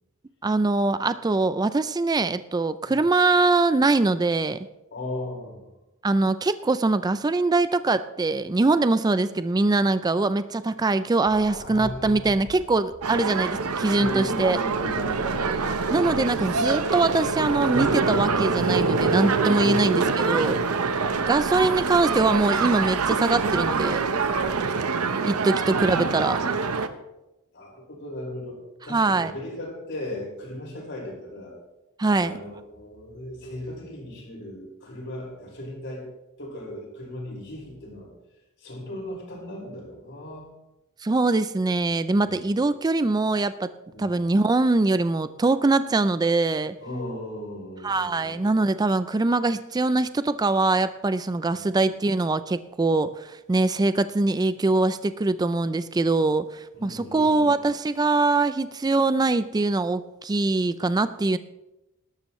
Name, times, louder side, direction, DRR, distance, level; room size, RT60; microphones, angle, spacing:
voice 1, 0.4-4.6 6.0-14.6 15.9-20.6 21.3-24.0 25.2-26.4 28.9-29.3 32.0-32.4 41.0-43.7 44.0-46.8 47.8-61.4, right 3 dB, 20° right, 13 dB, 0.4 m, -23 dB
voice 2, 4.9-5.6 11.4-12.4 14.0-15.4 19.6-20.0 27.5-28.6 28.8-31.5 32.1-36.1 36.4-38.1 38.6-40.5 42.2-42.6 43.9-44.2 46.8-48.5 51.5-51.7 56.7-57.6, left 1 dB, 55° left, -2 dB, 5.2 m, -37 dB
sound 1, 11.3-24.5, equal, 75° left, 2.1 m, -45 dB
sound 2, 13.0-26.9, right 4 dB, 75° right, 0.9 m, -25 dB
19.0 x 12.5 x 3.1 m, 0.95 s
head